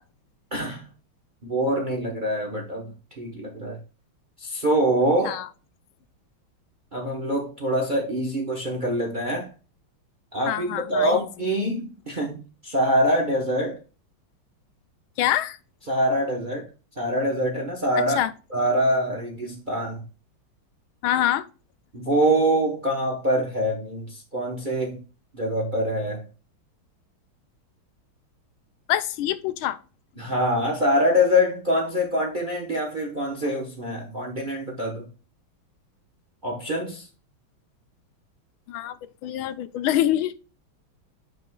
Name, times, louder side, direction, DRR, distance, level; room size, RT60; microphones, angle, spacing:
voice 1, 0.5-0.9 1.4-3.8 4.4-5.4 6.9-9.5 10.3-13.8 15.9-16.7 17.0-18.2 18.5-20.0 21.9-25.0 25.3-26.2 30.2-35.1 36.4-37.1, equal, 30° right, 0.9 m, -24 dB
voice 2, 10.5-11.3 15.2-15.6 18.1-18.3 21.0-21.4 28.9-29.8 38.7-39.0 39.2-40.3, left 12 dB, 80° left, 1.4 m, -25 dB
9.0 x 5.0 x 2.3 m
omnidirectional pair, 2.3 m